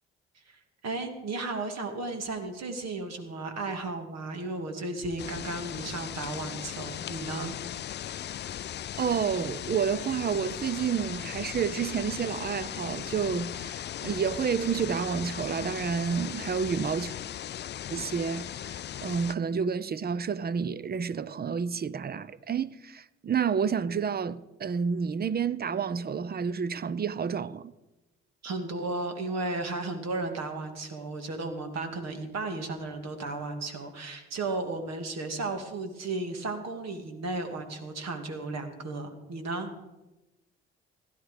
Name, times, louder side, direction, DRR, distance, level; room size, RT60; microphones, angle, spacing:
voice 1, 0.3-7.5 28.4-39.7, right 2 dB, 60° right, 2.4 m, -34 dB
sound 1, 5.2-19.3, left 11 dB, 35° left, 0.4 m, -38 dB
voice 2, 9.0-17.2 17.9-27.7, right 6 dB, 30° right, 0.7 m, -30 dB
16.0 x 11.5 x 5.1 m
hypercardioid pair, 50°, 31 cm